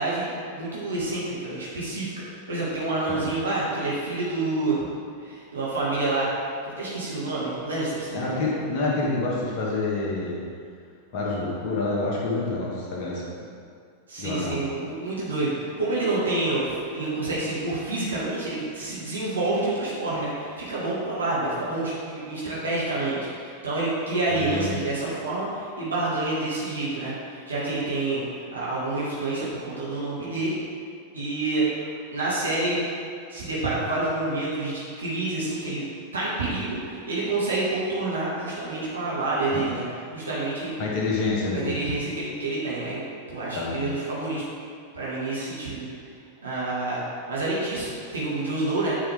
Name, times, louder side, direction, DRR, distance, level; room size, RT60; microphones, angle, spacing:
voice 1, 0.0-4.9 5.2-6.3 6.6-8.5 14.1-30.6 31.1-31.7 32.1-32.8 33.3-35.8 36.1-39.9 40.1-40.8 41.5-44.4 44.9-45.9 46.4-47.0 47.3-49.0, right 2 dB, 75° right, -8 dB, 1.7 m, -28 dB
voice 2, 8.1-10.4 11.1-13.5 14.2-14.6 24.4-24.7 39.5-39.6 40.8-41.8 43.5-43.8, left 3 dB, 45° left, -4 dB, 1.5 m, -27 dB
8.8 x 4.8 x 3.5 m, 2.3 s
figure-of-eight pair, 90°, 0 cm